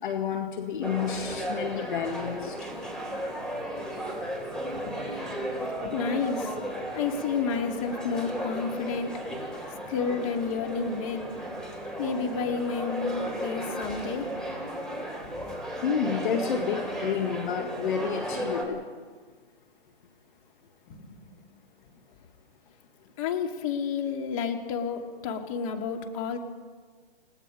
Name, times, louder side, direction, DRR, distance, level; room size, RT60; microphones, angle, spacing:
voice 1, 0.0-2.6 15.8-18.8, left 7 dB, 55° left, 5 dB, 1.9 m, -30 dB
sound 1, 0.8-18.6, equal, ahead, 3.9 m, -35 dB
voice 2, 4.7-5.0 5.8-6.6 6.9-9.2 9.9-11.3 12.0-14.3 20.9-21.4 23.2-26.4, left 5 dB, 35° left, 4 dB, 2.7 m, -31 dB
30.0 x 18.5 x 5.3 m, 1.5 s
hypercardioid pair, 145°, 30 cm